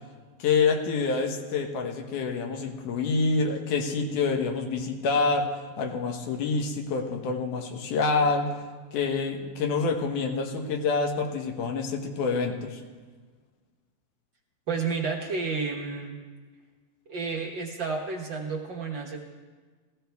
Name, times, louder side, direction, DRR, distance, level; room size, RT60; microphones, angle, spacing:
voice 1, 0.4-5.5 5.8-8.5 8.9-12.8, left 4 dB, 90° left, 4 dB, 2.7 m, -27 dB
voice 2, 14.7-16.2 17.1-19.2, right 4 dB, 50° right, -1 dB, 1.5 m, -31 dB
16.5 x 15.5 x 3.5 m, 1.4 s
omnidirectional pair, 3.5 m